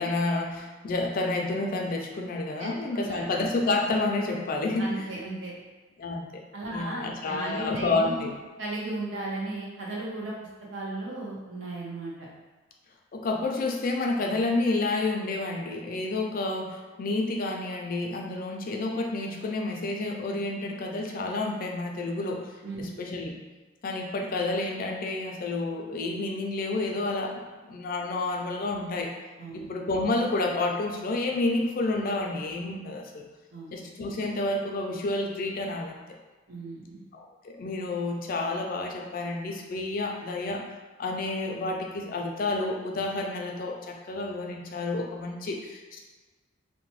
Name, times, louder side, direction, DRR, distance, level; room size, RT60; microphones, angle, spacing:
voice 1, 0.0-5.1 6.0-6.4 6.7-8.4 13.1-22.5 22.8-23.3 23.8-29.1 29.5-33.2 33.7-36.0 37.1-40.7 41.0-46.0, left 2 dB, 45° left, 1 dB, 0.4 m, -30 dB
voice 2, 2.6-3.3 4.8-5.5 6.5-8.3 8.6-10.3 10.7-12.1 22.6-22.9 29.4-29.7 33.5-33.7 36.5-37.0, right 2 dB, 70° right, -5 dB, 0.8 m, -35 dB
2.8 x 2.1 x 3.0 m, 1.3 s
head